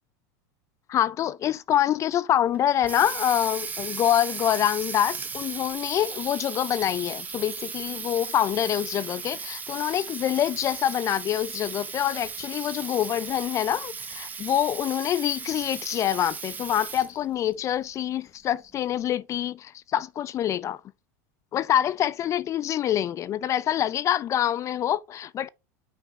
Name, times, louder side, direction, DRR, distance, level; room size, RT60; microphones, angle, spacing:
voice 1, 0.9-20.8 21.5-25.5, left 11 dB, 35° left, 0.4 m, -26 dB
Water tap faucet, 2.5-17.2, right 5 dB, 20° right, 0.8 m, -36 dB
5.8 x 4.2 x 5.4 m
supercardioid pair, 110°, 9 cm